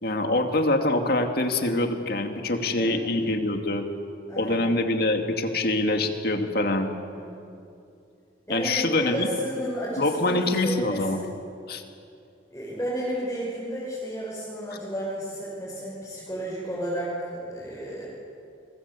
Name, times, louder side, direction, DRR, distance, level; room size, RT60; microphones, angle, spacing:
voice 1, 0.0-3.8 4.4-6.9 8.5-9.3 10.0-11.2 11.7-11.8, left 2 dB, 55° left, 5 dB, 2.4 m, -25 dB
voice 2, 4.3-4.8 7.1-7.4 8.5-11.3 12.5-18.1, equal, 15° left, -7 dB, 6.7 m, -32 dB
28.0 x 22.5 x 8.3 m, 2.6 s
head